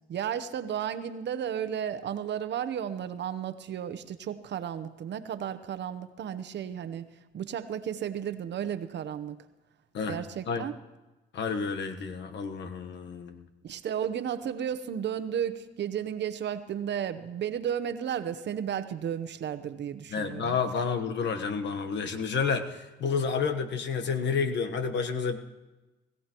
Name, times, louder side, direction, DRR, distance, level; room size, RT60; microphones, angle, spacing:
voice 1, 0.1-7.0 7.3-9.4 10.1-10.7 13.6-20.6, right 9 dB, 60° right, 10 dB, 0.9 m, -33 dB
voice 2, 11.3-13.5 20.1-25.4, left 5 dB, 65° left, 7 dB, 1.2 m, -30 dB
20.5 x 16.0 x 3.0 m, 1.1 s
cardioid pair, 90°, 20 cm